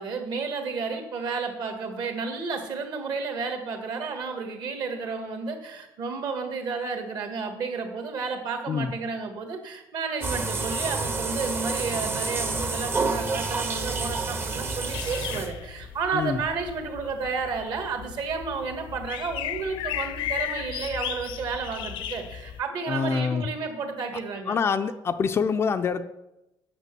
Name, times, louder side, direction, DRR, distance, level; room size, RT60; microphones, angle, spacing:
voice 1, 0.0-24.6, right 4 dB, 55° right, 4 dB, 1.6 m, -32 dB
sound 1, 10.2-15.8, right 3 dB, 25° right, 0.8 m, -29 dB
sound 2, 14.9-22.6, left 11 dB, 75° left, 0.7 m, -35 dB
voice 2, 22.9-23.5 24.5-26.0, left 5 dB, 30° left, 9 dB, 0.4 m, -25 dB
9.1 x 5.8 x 6.8 m, 0.93 s
cardioid pair, 170°, 9 cm